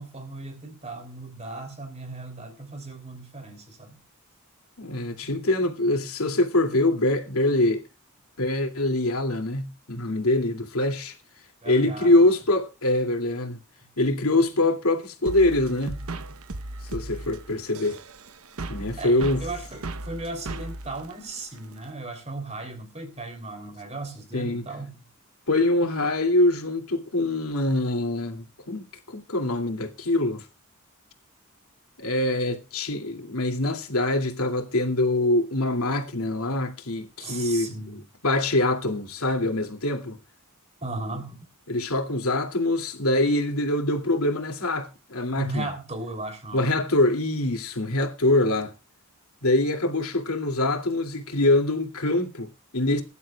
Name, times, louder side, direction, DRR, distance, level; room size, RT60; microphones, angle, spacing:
voice 1, 0.0-4.0 5.2-6.6 11.6-12.3 14.4-15.0 15.8-16.3 19.0-25.0 37.2-38.0 40.8-41.4 45.4-46.9, right 2 dB, 30° right, 3.2 m, -37 dB
voice 2, 4.8-7.8 8.4-11.1 11.6-13.6 14.0-16.0 16.9-18.0 18.7-19.4 24.3-24.7 25.5-30.4 32.0-37.7 38.2-40.2 41.7-45.7 46.5-48.7 49.4-53.0, left 2 dB, 90° left, 2.6 m, -24 dB
sound 1, 15.3-21.9, right 2 dB, 85° right, 1.0 m, -37 dB
21.5 x 11.5 x 2.3 m
head